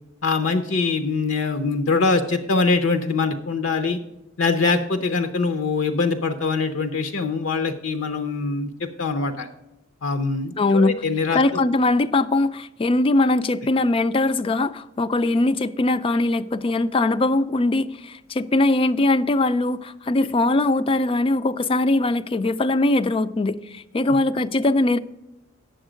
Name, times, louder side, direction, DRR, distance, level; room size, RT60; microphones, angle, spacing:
voice 1, 0.2-4.0 4.4-9.5 10.0-11.4, left 4 dB, 70° left, 0.6 m, -23 dB
voice 2, 10.6-11.0 11.3-25.0, left 2 dB, 25° left, 0.3 m, -21 dB
9.0 x 7.1 x 5.0 m
head